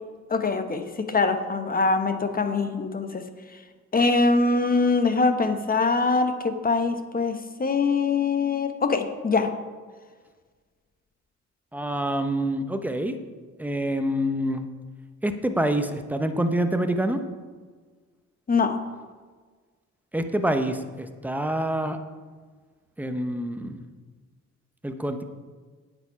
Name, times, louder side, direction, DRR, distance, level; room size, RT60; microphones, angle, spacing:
voice 1, 0.3-3.2 3.9-9.5 18.5-18.8, left 4 dB, 30° left, 8 dB, 1.0 m, -23 dB
voice 2, 11.7-13.2 13.6-14.7 15.2-17.2 20.1-22.0 23.0-23.8 24.8-25.2, right 1 dB, 5° right, 7 dB, 0.9 m, -26 dB
9.2 x 7.1 x 5.7 m, 1.5 s
cardioid pair, 90°, 30 cm